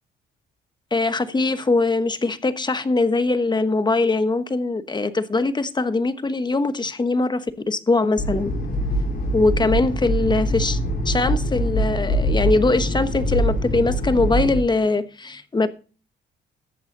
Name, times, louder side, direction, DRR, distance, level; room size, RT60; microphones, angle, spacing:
voice 1, 0.9-8.5 9.3-10.8 11.0-15.7, left 3 dB, 20° left, 1.1 m, -22 dB
sound 1, 8.2-14.6, equal, 50° left, 4.4 m, -23 dB
14.0 x 8.1 x 3.9 m
cardioid pair, 90°, 20 cm